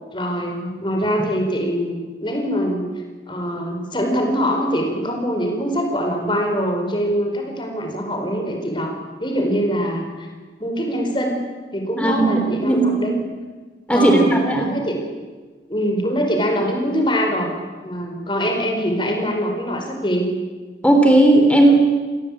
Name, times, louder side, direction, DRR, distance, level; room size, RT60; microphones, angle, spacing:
voice 1, 0.1-2.9 3.3-8.9 9.2-10.3 10.6-11.5 11.7-13.2 13.9-15.0 15.7-17.5 17.8-20.3, equal, 25° left, 3 dB, 4.9 m, -23 dB
voice 2, 12.6-13.1 13.9-14.7 20.8-21.8, right 1 dB, 5° left, 3 dB, 3.3 m, -15 dB
28.0 x 18.0 x 8.7 m, 1.4 s
head